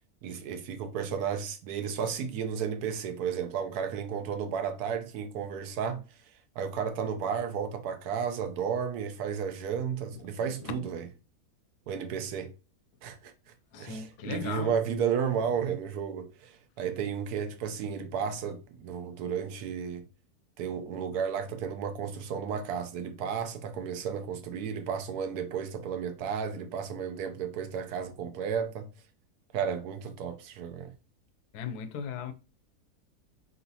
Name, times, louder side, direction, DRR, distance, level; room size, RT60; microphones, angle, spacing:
voice 1, 0.2-6.0 6.6-11.0 11.9-12.5 13.0-13.3 13.8-16.5 16.8-20.0 20.6-28.9 29.5-30.9, right 7 dB, 75° right, 1.2 m, -33 dB
voice 2, 13.7-14.8 31.5-32.3, left 7 dB, 85° left, 1.2 m, -37 dB
4.3 x 3.9 x 2.7 m
omnidirectional pair, 1.7 m